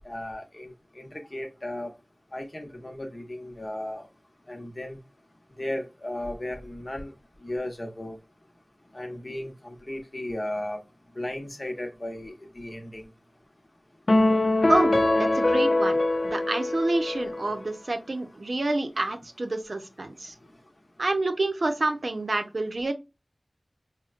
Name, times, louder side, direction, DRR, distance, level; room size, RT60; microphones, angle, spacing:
voice 1, 0.0-1.9 2.3-4.1 4.5-5.0 5.6-7.1 7.4-8.2 8.9-10.8 11.2-13.0, left 1 dB, 40° left, 3 dB, 0.9 m, -35 dB
sound 1, 14.1-17.6, left 2 dB, 60° left, 0.4 m, -23 dB
voice 2, 14.7-20.3 21.0-22.9, right 2 dB, 70° right, 6 dB, 0.7 m, -28 dB
5.0 x 2.2 x 2.4 m, 0.26 s
wide cardioid pair, 55°, 0 cm